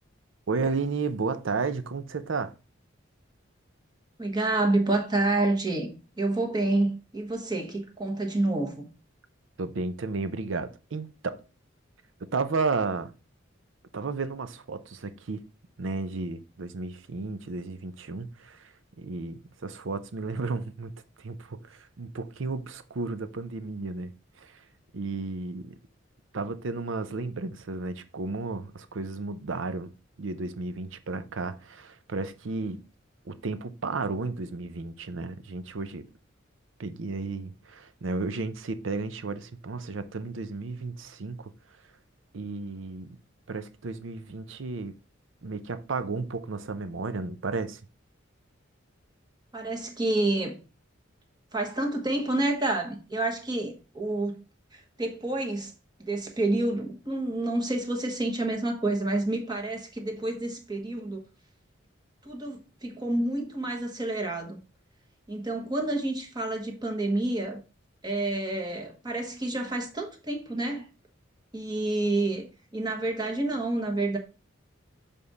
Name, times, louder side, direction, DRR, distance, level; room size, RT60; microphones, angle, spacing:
voice 1, 0.5-2.5 9.6-11.4 12.3-13.1 13.9-15.4 15.8-18.6 19.0-20.9 21.2-24.1 24.4-24.6 24.9-25.8 26.3-29.9 30.2-32.8 33.3-36.1 36.8-41.5 42.3-43.2 43.5-45.0 45.4-47.8, right 3 dB, 75° right, 0.6 m, -33 dB
voice 2, 4.2-8.9 49.5-50.6 51.5-54.4 54.7-55.7 56.0-61.2 62.2-64.6 65.3-67.6 68.0-70.9 71.5-72.5 72.7-74.2, right 2 dB, 20° right, 1.2 m, -28 dB
6.8 x 3.7 x 4.0 m
head